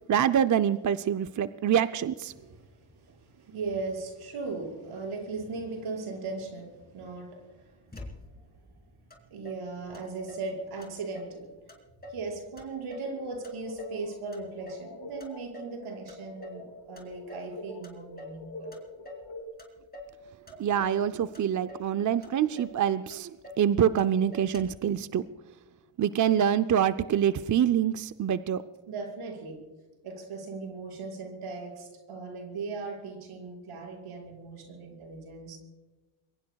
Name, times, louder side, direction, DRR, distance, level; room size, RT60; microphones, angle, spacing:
voice 1, 0.1-2.3 20.6-23.3 23.6-25.2 26.0-28.6, right 9 dB, 40° right, 11 dB, 0.5 m, -25 dB
voice 2, 2.3-7.8 9.3-11.6 12.1-18.8 28.9-29.7 30.0-35.6, right 3 dB, 85° right, 0 dB, 5.6 m, -38 dB
Motor vehicle (road), 7.9-8.6 9.1-9.2 9.4-10.5 10.8-11.4 11.7-12.3 12.6-14.0 14.3-14.9 15.2-15.8 16.1-16.7 17.0-17.5 17.8-18.4 18.7-19.3 19.6-20.2 20.5-21.1 21.3-21.9 22.2-22.3 22.6-22.8 23.1-23.7 24.0-24.1 24.3-24.9, left 1 dB, 20° left, 3.7 m, -46 dB
sound 1, 13.1-19.4, left 2 dB, 85° left, 3.8 m, -45 dB
27.0 x 22.5 x 2.3 m, 1.2 s
cardioid pair, 85°, 49 cm